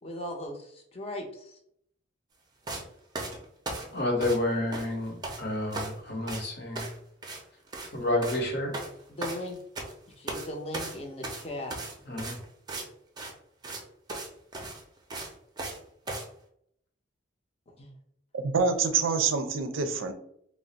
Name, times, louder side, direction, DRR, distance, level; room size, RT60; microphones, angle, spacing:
voice 1, 0.0-1.6 3.8-4.1 9.1-9.6 10.2-11.8 17.7-17.9, left 1 dB, 30° left, 2 dB, 0.6 m, -38 dB
sound 1, 2.7-2.8 3.1-4.5 4.7-5.4 5.7-6.0 6.3-6.4 6.8-7.0 7.2-7.4 7.7-7.9 8.2-8.4 8.7-9.9 10.3-10.5 10.7-12.9 13.2-13.3 13.6-13.8 14.1-14.3 14.5-15.8 16.1-16.3, right 2 dB, 20° right, 0.5 m, -37 dB
voice 2, 3.9-6.9 7.9-8.7 12.1-12.3, left 1 dB, 55° left, 1 dB, 0.9 m, -29 dB
voice 3, 18.3-20.1, right 5 dB, 85° right, 7 dB, 0.4 m, -26 dB
2.4 x 2.0 x 3.8 m, 0.70 s
head